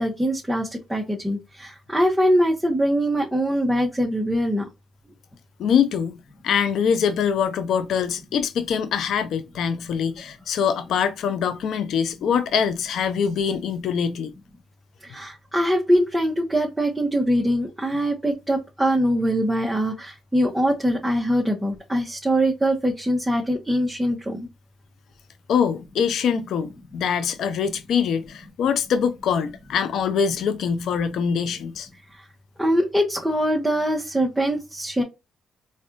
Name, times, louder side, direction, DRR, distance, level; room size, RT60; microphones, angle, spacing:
voice 1, 0.0-4.6 15.0-24.4 32.6-35.0, equal, 5° right, 1.0 m, -23 dB
voice 2, 5.6-6.1 6.4-14.3 25.5-31.9, left 7 dB, 70° left, 0.5 m, -23 dB
4.3 x 2.4 x 2.5 m
cardioid pair, 90°, 0 cm